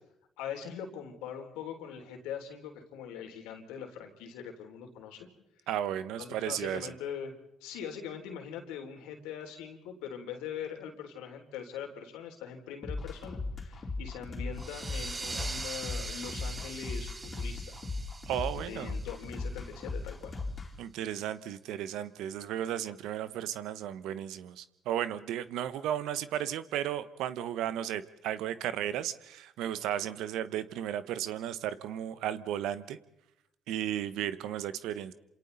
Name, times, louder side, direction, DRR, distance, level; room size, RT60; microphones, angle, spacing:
voice 1, 0.4-5.3 6.2-7.3 7.6-17.8 18.7-20.4, left 8 dB, 80° left, 4 dB, 3.6 m, -42 dB
voice 2, 5.7-6.9 18.3-19.0 20.8-33.0 33.7-35.1, right 11 dB, 75° right, 14 dB, 1.1 m, -34 dB
sound 1, 12.8-20.7, left 3 dB, 35° left, 3.6 m, -37 dB
sound 2, 14.6-19.9, right 3 dB, 25° right, 0.7 m, -42 dB
28.5 x 27.0 x 4.1 m, 0.84 s
supercardioid pair, 65°, 0 cm